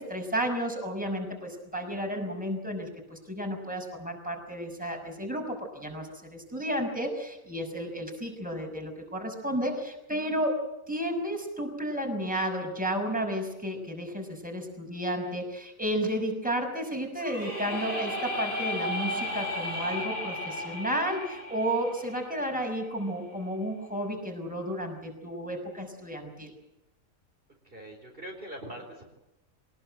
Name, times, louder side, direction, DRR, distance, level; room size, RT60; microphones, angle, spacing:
voice 1, 0.0-10.6 10.9-26.5, equal, 5° right, 2 dB, 5.8 m, -32 dB
sound 1, 17.2-23.0, left 1 dB, 40° left, 6.9 m, -35 dB
voice 2, 27.6-29.0, right 1 dB, 40° right, 0 dB, 4.5 m, -42 dB
23.5 x 20.5 x 7.8 m, 0.89 s
omnidirectional pair, 1.5 m